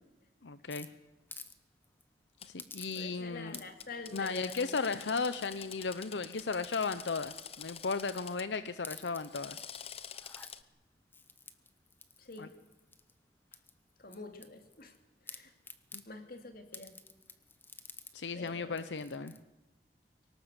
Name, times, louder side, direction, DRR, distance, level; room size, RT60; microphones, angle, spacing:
voice 1, 0.4-0.9 2.4-3.6 4.1-9.6 12.4-12.5 15.9-16.0 18.1-19.3, left 4 dB, 85° left, 13 dB, 0.8 m, -35 dB
sound 1, 0.7-1.6 1.8-2.0 2.6-3.2 3.5-3.9 4.5-4.8 5.4-5.8 6.2-8.4 8.7-9.6 10.1-10.5 11.1-13.1 13.5-15.0 15.3-16.1 16.7-18.1 18.5-18.6 18.8-19.4, left 4 dB, 10° left, 1.2 m, -51 dB
Drill, 2.4-2.5 3.5-8.5 9.1-10.6, left 8 dB, 35° left, 0.9 m, -47 dB
voice 2, 2.9-5.1 12.2-12.5 14.0-15.0 15.2-15.5 16.1-16.9 18.3-18.8, left 3 dB, 55° left, 7 dB, 2.6 m, -47 dB
23.0 x 18.5 x 8.2 m, 1.1 s
head